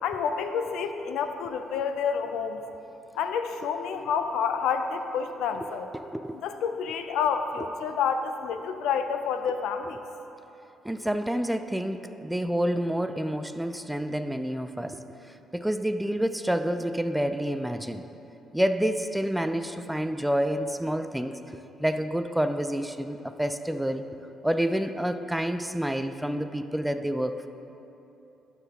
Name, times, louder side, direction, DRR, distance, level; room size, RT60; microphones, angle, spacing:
voice 1, 0.0-2.6 3.1-5.9 6.4-10.0, left 6 dB, 85° left, 8 dB, 0.4 m, -29 dB
voice 2, 5.9-6.4 10.8-15.0 15.5-18.1 18.5-21.4 21.8-24.0 24.4-27.5, equal, 5° right, 9 dB, 0.3 m, -28 dB
11.5 x 5.8 x 2.8 m, 3.0 s
cardioid pair, 95°, 0 cm